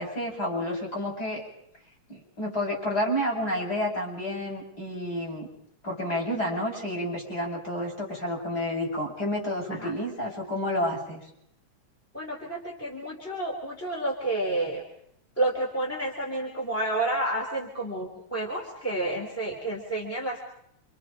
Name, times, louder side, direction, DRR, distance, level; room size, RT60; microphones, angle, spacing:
voice 1, 0.0-1.4 2.1-5.5 5.8-11.2, left 1 dB, 30° left, -2 dB, 7.7 m, -30 dB
voice 2, 12.1-14.8 15.4-20.4, right 2 dB, 5° left, -1 dB, 3.8 m, -30 dB
28.5 x 26.5 x 5.2 m, 0.72 s
omnidirectional pair, 3.4 m